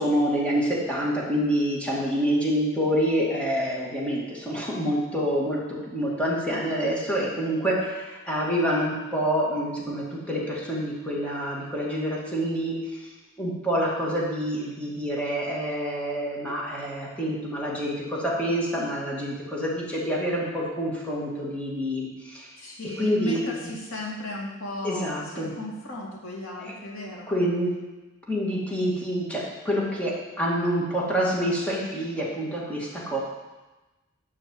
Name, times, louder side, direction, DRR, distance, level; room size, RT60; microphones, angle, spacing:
voice 1, 0.0-12.7 13.4-22.5 23.0-23.6 24.8-25.5 26.6-26.7 27.3-27.7 28.3-33.2, equal, 5° left, -5 dB, 2.4 m, -27 dB
voice 2, 22.6-27.3, left 1 dB, 80° left, -3 dB, 2.5 m, -35 dB
12.5 x 4.9 x 8.0 m, 1.1 s
head